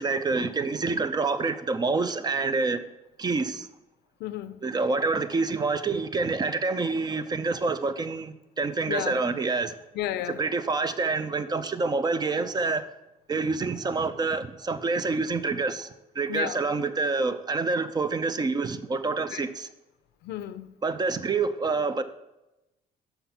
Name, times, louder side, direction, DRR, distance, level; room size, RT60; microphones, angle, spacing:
voice 1, 0.0-2.8 3.2-3.7 4.6-9.8 10.4-12.9 13.3-19.7 20.8-22.0, right 3 dB, 25° right, 0.5 m, -27 dB
voice 2, 4.2-4.6 8.9-9.2 10.0-10.4 16.3-16.6 19.3-19.4 20.2-20.7, left 12 dB, 80° left, 0.5 m, -32 dB
5.7 x 5.5 x 5.7 m
cardioid pair, 110°, 17 cm